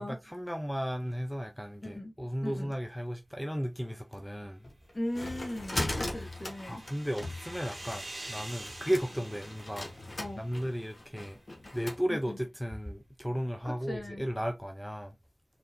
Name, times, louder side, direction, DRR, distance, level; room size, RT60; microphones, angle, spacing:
voice 1, 0.0-4.6 6.0-6.3 6.7-9.9 10.4-11.4 11.7-15.1, equal, ahead, 0.6 m, -35 dB
voice 2, 1.8-2.1 2.4-2.7 4.9-6.8 10.2-10.4 12.1-12.4 13.6-14.2, left 1 dB, 40° left, 1.8 m, -38 dB
sound 1, 4.6-12.0, left 1 dB, 60° left, 1.2 m, -39 dB
sound 2, 5.5-11.0, right 2 dB, 45° right, 1.2 m, -47 dB
3.9 x 3.8 x 2.6 m
wide cardioid pair, 50°, 0 cm